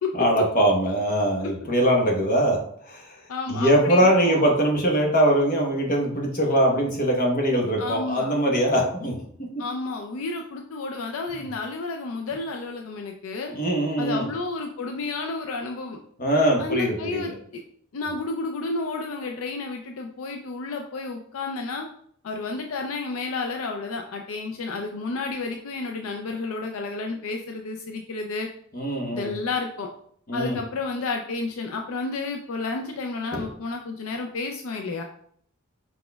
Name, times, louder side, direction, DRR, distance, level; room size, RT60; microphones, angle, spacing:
voice 1, 0.1-2.6 2.9-3.1 3.5-9.1 13.5-14.3 16.2-17.3 28.7-29.3 30.3-30.6 33.3-33.4, equal, 40° left, 0 dB, 1.0 m, -22 dB
voice 2, 3.3-4.5 7.8-8.3 9.6-13.5 14.0-16.0 16.6-17.3 17.9-21.9 22.2-28.5 29.1-29.9 30.3-35.0, left 3 dB, 70° left, 3 dB, 0.4 m, -31 dB
4.8 x 4.1 x 2.2 m, 0.64 s
head